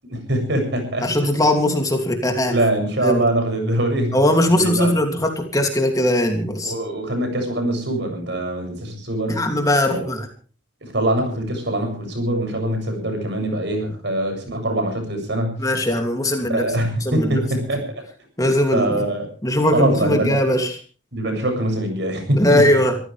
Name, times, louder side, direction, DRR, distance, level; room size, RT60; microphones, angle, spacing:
voice 1, 0.0-1.1 2.4-4.2 4.5-4.9 6.6-9.4 9.9-10.0 10.9-15.6 16.5-18.0 18.4-19.3 19.7-20.3 21.1-22.6, right 1 dB, 60° right, 5 dB, 7.7 m, -23 dB
voice 2, 1.0-2.5 3.0-3.2 4.1-6.7 9.3-10.3 15.6-16.6 17.0-17.4 18.4-19.0 19.4-20.8 22.3-23.0, left 1 dB, 20° left, 3 dB, 2.8 m, -19 dB
25.5 x 15.0 x 3.5 m, 0.38 s
head